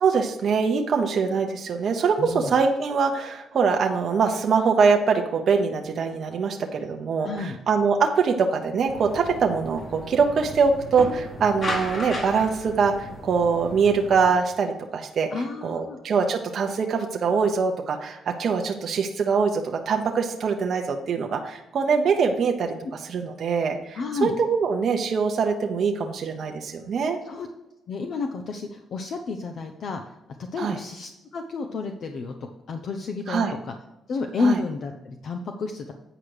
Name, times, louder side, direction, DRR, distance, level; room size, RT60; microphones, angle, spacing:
voice 1, 0.0-15.3 15.6-22.7 23.0-27.2 30.6-30.8 33.3-33.5 34.4-34.6, right 5 dB, 55° right, 3 dB, 0.8 m, -23 dB
voice 2, 2.2-2.6 7.2-7.6 15.3-16.0 23.9-24.3 27.2-27.5 27.9-30.1 30.4-32.3 32.7-33.7 34.1-35.9, left 4 dB, 60° left, 5 dB, 0.7 m, -30 dB
sound 1, 8.9-14.3, left 1 dB, 45° left, 2.1 m, -35 dB
9.0 x 4.9 x 4.8 m, 0.96 s
cardioid pair, 90°, 0 cm